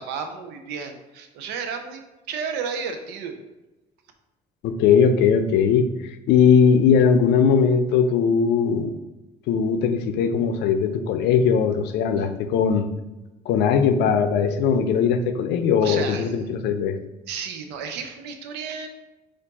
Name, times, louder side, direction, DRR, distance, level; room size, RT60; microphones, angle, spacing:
voice 1, 0.0-2.0 2.3-3.4 15.8-16.3 17.3-18.9, right 6 dB, 90° right, 6 dB, 0.6 m, -32 dB
voice 2, 4.6-8.9 9.5-12.9 13.5-17.0, left 6 dB, 80° left, 8 dB, 0.5 m, -19 dB
4.4 x 2.5 x 4.1 m, 1.0 s
cardioid pair, 110°, 17 cm